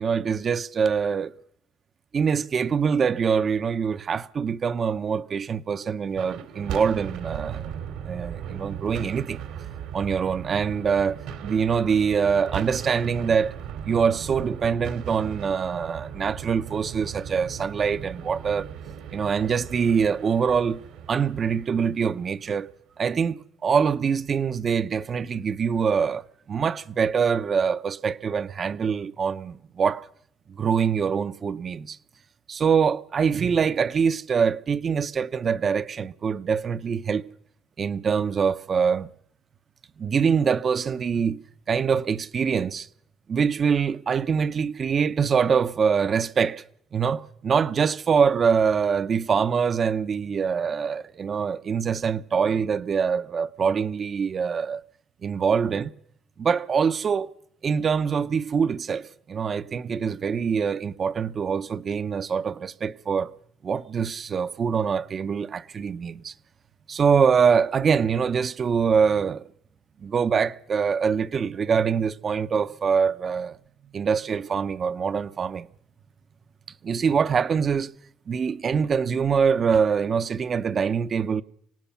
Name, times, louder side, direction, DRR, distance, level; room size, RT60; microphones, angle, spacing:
voice 1, 0.0-1.3 2.1-7.7 8.0-9.4 9.9-13.6 13.9-18.7 19.1-20.8 21.1-22.7 23.0-30.1 30.5-32.0 32.5-37.3 37.8-39.1 40.0-41.4 41.7-42.9 43.3-46.6 46.9-54.8 55.2-55.9 56.4-57.3 57.6-63.3 63.6-66.3 66.9-69.5 70.0-73.6 73.9-75.7 76.8-77.9 78.3-81.4, right 6 dB, 40° right, 0.8 m, -24 dB
sound 1, 6.1-22.5, right 8 dB, 80° right, 2.7 m, -37 dB
25.5 x 18.5 x 5.8 m
cardioid pair, 95°, 0 cm